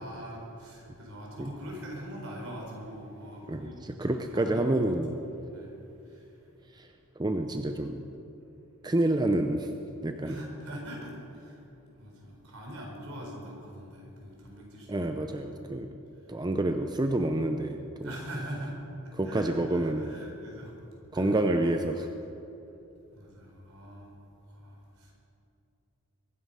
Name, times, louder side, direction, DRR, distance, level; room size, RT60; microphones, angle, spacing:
voice 1, 0.0-4.8 5.5-5.8 6.0-6.3 10.3-11.7 12.0-15.8 16.2-16.3 18.0-20.8 21.1-21.4 23.1-24.2 24.5-25.1, equal, 70° right, -1 dB, 4.3 m, -43 dB
voice 2, 4.0-5.1 6.8-6.9 7.2-8.0 8.8-9.7 10.0-10.4 14.9-15.9 16.3-18.1 19.2-20.2 21.1-22.1, right 1 dB, 20° right, 6 dB, 0.6 m, -28 dB
22.5 x 9.6 x 5.5 m, 2.9 s
head